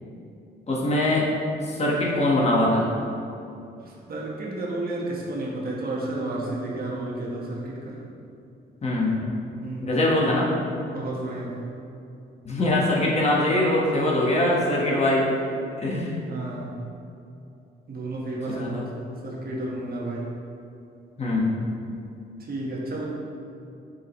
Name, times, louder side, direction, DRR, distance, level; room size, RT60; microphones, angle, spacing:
voice 1, 0.7-1.2 1.6-2.9 8.8-9.2 9.8-10.5 12.4-15.3 15.8-16.2 18.5-18.8 21.2-21.5, left 1 dB, 35° left, -4 dB, 1.4 m, -22 dB
voice 2, 3.8-8.0 9.6-10.0 10.9-11.7 16.3-16.7 17.9-20.4 22.4-23.1, right 2 dB, 50° right, -3 dB, 1.3 m, -32 dB
6.3 x 5.7 x 3.1 m, 2.7 s
cardioid pair, 90°, 20 cm